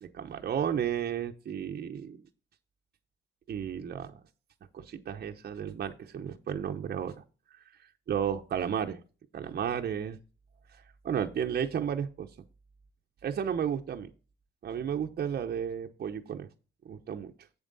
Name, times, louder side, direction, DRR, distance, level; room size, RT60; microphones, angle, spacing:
voice 1, 0.0-2.2 3.5-4.2 4.7-7.2 7.8-9.0 9.3-10.2 11.0-12.3 13.2-14.1 14.6-16.5 16.8-17.3, right 8 dB, 50° right, 4 dB, 0.9 m, -33 dB
7.9 x 7.4 x 4.0 m, 0.34 s
cardioid pair, 90°, 20 cm